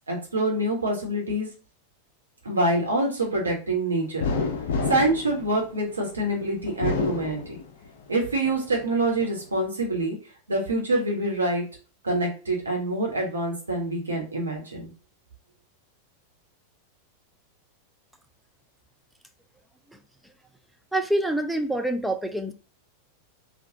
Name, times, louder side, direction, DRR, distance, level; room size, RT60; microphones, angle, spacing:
voice 1, 0.1-1.5 2.4-4.3 4.9-7.6 8.1-10.2 10.5-11.6 12.0-14.9, right 1 dB, 75° right, 1.1 m, -26 dB
sound 1, 4.2-6.1 6.7-8.0 8.4-9.3, left 4 dB, 60° left, 0.5 m, -29 dB
voice 2, 20.9-22.5, right 1 dB, ahead, 0.4 m, -26 dB
3.1 x 2.4 x 2.7 m
figure-of-eight pair, 90°, 0 cm